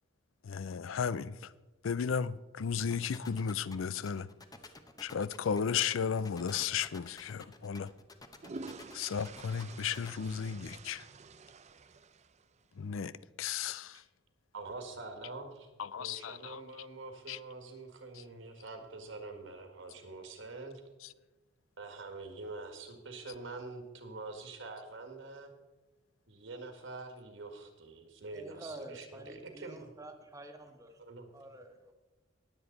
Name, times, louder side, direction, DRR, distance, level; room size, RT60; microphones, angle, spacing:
voice 1, 0.4-1.4 1.8-4.3 5.0-7.9 8.9-11.0 12.8-13.1 13.4-14.0 15.8-16.6 17.3-17.4, left 7 dB, 75° left, 0.4 m, -34 dB
sound 1, 2.8-10.1, left 3 dB, 20° left, 0.9 m, -51 dB
sound 2, 8.0-12.7, right 3 dB, 35° right, 0.5 m, -49 dB
voice 2, 14.5-15.7 16.0-20.8 21.8-25.5 26.3-29.9 31.0-31.3, right 3 dB, 70° right, 1.9 m, -45 dB
voice 3, 28.3-30.9 31.3-31.9, right 1 dB, 15° right, 1.3 m, -48 dB
20.0 x 7.9 x 4.0 m
head